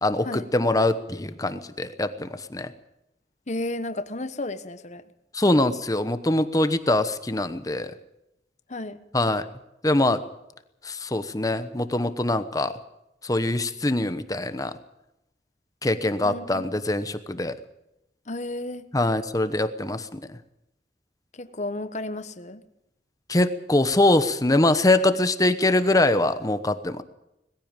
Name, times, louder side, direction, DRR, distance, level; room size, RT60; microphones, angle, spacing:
voice 1, 0.0-2.7 5.3-7.9 9.1-9.4 9.8-10.2 10.8-12.8 13.2-14.7 15.8-17.6 18.9-20.4 23.3-27.0, left 2 dB, 20° left, 11 dB, 1.0 m, -23 dB
voice 2, 3.5-5.0 8.7-9.1 16.2-16.6 18.3-18.9 21.3-22.6, left 2 dB, 40° left, 11 dB, 1.2 m, -33 dB
20.5 x 15.5 x 9.0 m, 0.87 s
head